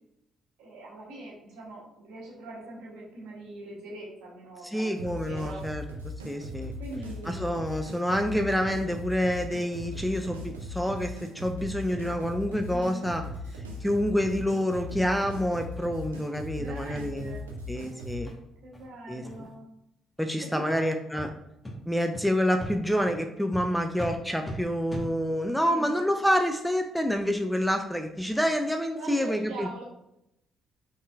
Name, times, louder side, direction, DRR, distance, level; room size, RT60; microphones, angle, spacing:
voice 1, 0.6-5.6 6.8-7.6 12.7-13.1 16.6-17.5 18.6-19.7 20.4-20.9 25.4-26.0 28.9-29.8, right 1 dB, 65° right, -5 dB, 1.4 m, -42 dB
voice 2, 4.7-5.8 6.2-6.7 7.3-13.2 13.8-17.4 17.7-18.3 19.1-19.5 20.2-21.3 21.9-29.7, equal, ahead, 5 dB, 0.4 m, -28 dB
sound 1, 5.0-18.2, left 1 dB, 85° right, 0.4 m, -39 dB
sound 2, 14.7-14.8 15.3-15.4 15.7-15.9 16.2-16.3 16.7-16.8 17.2-17.4 17.7-17.8 18.2-18.3 18.7-18.9 19.2-19.5 20.1-20.3 20.7-20.8 21.1-21.3 21.6-21.7 22.1-22.2 22.6-22.7 23.1-23.2 23.5-23.6 23.9-24.1 24.4-24.5 24.9-25.0, left 1 dB, 15° left, 1.1 m, -40 dB
3.9 x 3.7 x 2.4 m, 0.83 s
figure-of-eight pair, 45°, 0 cm